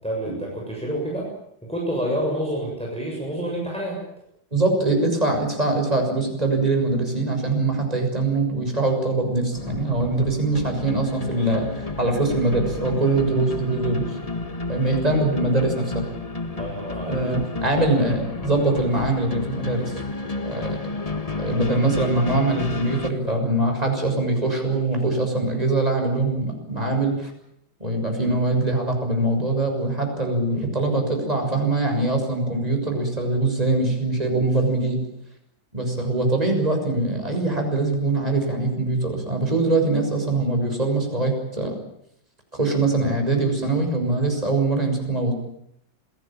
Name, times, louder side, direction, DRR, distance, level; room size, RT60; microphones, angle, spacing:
voice 1, 0.0-1.3 1.7-4.0 16.4-17.2 17.6-17.9, equal, 5° left, -2 dB, 7.1 m, -28 dB
voice 2, 4.5-11.7 12.0-14.0 14.7-16.0 17.1-20.0 20.4-20.8 21.4-27.3 27.8-35.0 35.7-41.7 42.5-45.3, right 2 dB, 20° right, 3 dB, 6.7 m, -23 dB
sound 1, 9.5-23.1, left 3 dB, 20° left, 1.5 m, -31 dB
27.0 x 18.0 x 9.0 m, 0.75 s
omnidirectional pair, 2.2 m